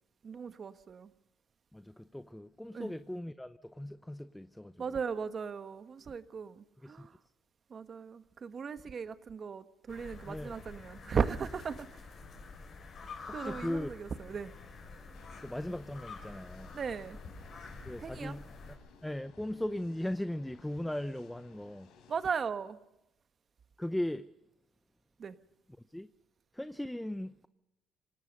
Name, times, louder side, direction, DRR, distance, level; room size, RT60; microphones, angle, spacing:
voice 1, 0.2-1.1 2.7-2.9 4.8-7.2 7.7-12.1 13.3-14.5 16.7-17.2 18.0-18.4 22.1-22.8 25.2-25.4, right 6 dB, 40° right, 1.3 m, -37 dB
voice 2, 1.7-4.8 6.8-7.0 10.3-10.5 13.4-13.9 15.4-16.7 17.8-18.5 19.0-21.9 23.8-24.3 25.9-26.1 26.5-27.5, left 1 dB, 5° left, 0.7 m, -38 dB
sound 1, 9.9-18.8, left 3 dB, 50° left, 6.0 m, -48 dB
sound 2, 15.1-22.3, left 6 dB, 85° left, 4.0 m, -60 dB
27.0 x 18.0 x 5.4 m
cardioid pair, 105°, 0 cm